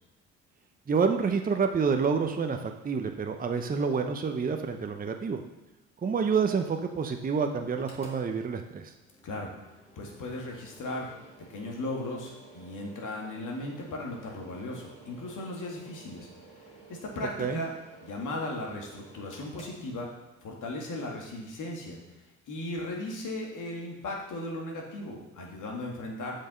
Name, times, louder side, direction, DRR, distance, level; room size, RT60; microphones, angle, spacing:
voice 1, 0.9-5.4 6.0-8.9 17.4-17.6, right 5 dB, 25° right, 5 dB, 0.8 m, -28 dB
Mechanical fan, 7.7-20.5, right 2 dB, 20° left, 2.5 m, -53 dB
voice 2, 10.0-11.1 11.5-16.3 16.9-17.7 18.0-20.1 20.4-22.0 22.5-26.4, left 1 dB, 55° left, -1 dB, 2.4 m, -36 dB
7.2 x 5.5 x 5.6 m, 1.0 s
hypercardioid pair, 60°, 36 cm